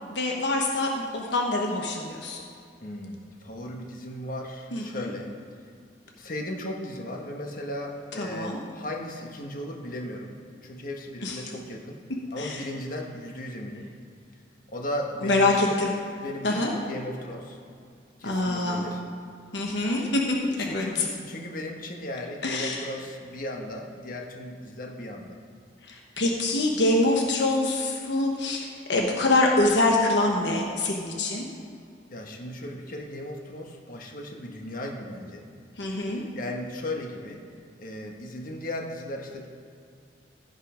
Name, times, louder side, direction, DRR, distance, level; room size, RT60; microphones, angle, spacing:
voice 1, 0.1-2.4 4.7-5.1 8.2-8.6 11.2-11.4 12.4-12.6 15.2-15.9 16.4-16.7 18.2-18.8 19.5-21.0 22.4-22.8 25.9-31.4 35.8-36.2, left 2 dB, 65° left, 0 dB, 1.2 m, -25 dB
voice 2, 2.8-5.3 6.2-10.3 10.6-12.0 12.3-13.8 14.7-15.7 16.2-17.6 18.2-19.0 20.6-25.4 32.1-35.4 36.1-37.4 37.8-39.5, left 1 dB, 45° left, 1 dB, 1.4 m, -36 dB
16.0 x 5.5 x 5.1 m, 2.4 s
head